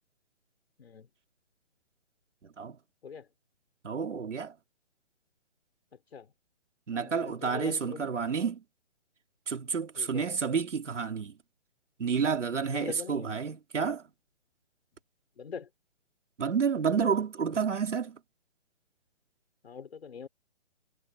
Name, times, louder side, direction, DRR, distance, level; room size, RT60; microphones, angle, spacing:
voice 1, 2.4-2.8 3.8-4.5 6.9-8.6 9.5-11.3 12.0-14.0 16.4-18.2, right 6 dB, 85° right, 3.7 m, -30 dB
voice 2, 6.9-8.1 10.0-10.4 12.7-13.3 15.4-15.7 19.6-20.3, left 6 dB, 60° left, 5.5 m, -42 dB
hypercardioid pair, 170°, 35 cm